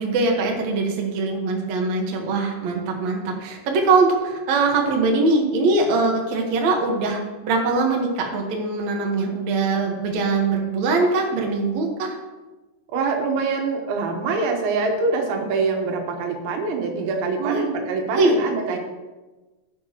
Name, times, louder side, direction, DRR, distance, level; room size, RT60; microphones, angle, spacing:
voice 1, 0.0-12.2 17.4-17.7 18.1-18.3, right 3 dB, 65° right, 1 dB, 1.8 m, -22 dB
voice 2, 12.9-18.8, right 4 dB, 85° right, 2 dB, 3.6 m, -24 dB
15.0 x 7.1 x 3.0 m, 1.2 s
omnidirectional pair, 5.1 m